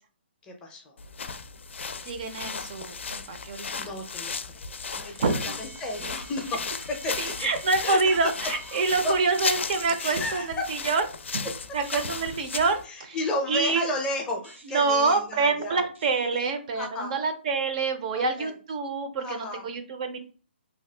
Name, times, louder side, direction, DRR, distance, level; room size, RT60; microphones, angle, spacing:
voice 1, 0.4-1.0 3.7-9.1 10.0-10.7 11.9-12.0 12.8-15.8 16.7-17.1 18.1-18.5 19.2-19.6, left 2 dB, 15° left, 2 dB, 0.5 m, -33 dB
sound 1, 1.0-12.8, left 5 dB, 90° left, 0.4 m, -35 dB
voice 2, 2.0-3.9 5.2-5.6 6.0-6.2 7.2-11.0 11.3-13.2 13.5-13.9 14.7-20.2, right 4 dB, 40° right, 7 dB, 0.5 m, -27 dB
sound 2, 5.0-10.0 11.7-12.6 14.4-14.9 16.0-16.3, right 1 dB, 90° right, 0.8 m, -48 dB
2.8 x 2.2 x 3.3 m, 0.38 s
hypercardioid pair, 160°, 6 cm